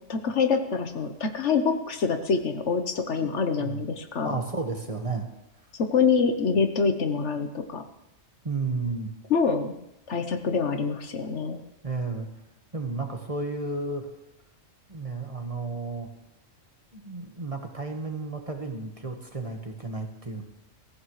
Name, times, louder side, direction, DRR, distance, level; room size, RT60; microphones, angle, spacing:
voice 1, 0.1-4.4 5.7-7.8 9.3-9.8 10.1-11.6, left 5 dB, 65° left, 7 dB, 1.3 m, -25 dB
voice 2, 4.2-5.3 8.4-9.1 11.8-12.3 12.7-14.1 14.9-16.1 16.9-20.4, right 3 dB, 25° right, 3 dB, 1.5 m, -32 dB
22.5 x 14.5 x 3.2 m, 0.87 s
omnidirectional pair, 1.3 m